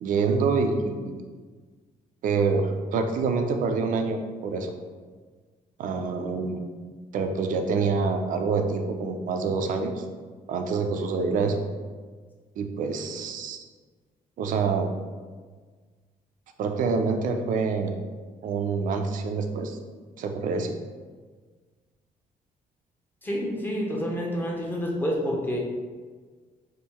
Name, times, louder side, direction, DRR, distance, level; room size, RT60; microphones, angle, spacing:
voice 1, 0.0-1.2 2.2-4.7 5.8-6.6 7.1-10.0 10.5-11.6 12.6-13.6 14.4-14.9 16.6-18.0 18.4-19.8 20.2-20.8, right 4 dB, 60° right, 5 dB, 0.4 m, -26 dB
voice 2, 23.2-25.6, equal, 10° left, -2 dB, 0.6 m, -28 dB
3.7 x 2.6 x 4.2 m, 1.5 s
cardioid pair, 175°, 16 cm